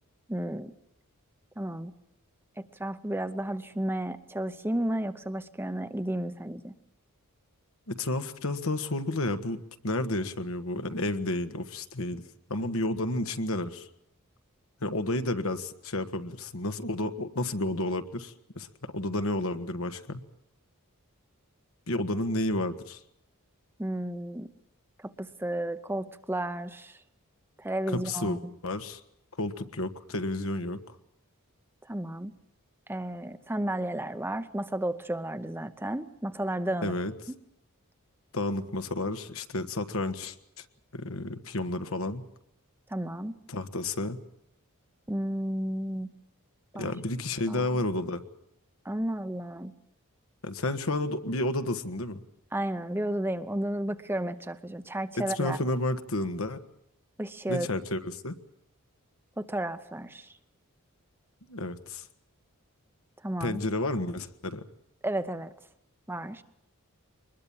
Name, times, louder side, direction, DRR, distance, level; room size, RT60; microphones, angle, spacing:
voice 1, 0.3-0.7 1.6-1.9 2.6-6.7 23.8-24.5 25.0-27.0 27.6-28.5 31.9-32.3 32.9-36.9 42.9-43.3 45.1-46.1 46.7-46.9 47.5-47.8 48.8-49.7 52.5-55.6 57.2-57.7 59.4-60.3 63.2-63.6 65.0-65.5 66.1-66.4, right 1 dB, 10° right, 10 dB, 0.8 m, -32 dB
voice 2, 7.9-12.2 12.5-13.9 14.8-20.2 21.9-23.0 27.9-29.0 29.4-30.8 36.8-37.1 38.3-40.6 40.9-42.2 43.5-44.2 46.8-48.2 50.4-52.2 55.3-56.6 57.5-58.3 61.5-62.0 63.4-64.6, left 2 dB, 70° left, 9 dB, 1.5 m, -31 dB
23.5 x 21.0 x 7.2 m, 0.81 s
head